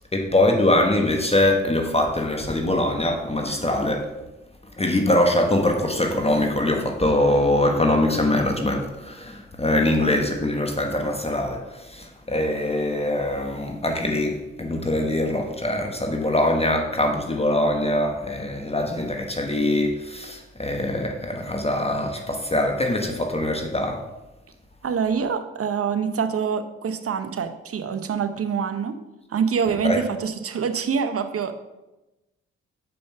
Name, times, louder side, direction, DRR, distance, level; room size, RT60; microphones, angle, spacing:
voice 1, 0.1-4.1 4.8-24.0 29.8-30.0, left 1 dB, 20° left, 3 dB, 1.3 m, -23 dB
voice 2, 9.7-10.2 24.8-29.0 29.3-31.5, right 6 dB, 50° right, 9 dB, 0.9 m, -26 dB
6.8 x 5.4 x 5.5 m, 1.0 s
hypercardioid pair, 40°, 29 cm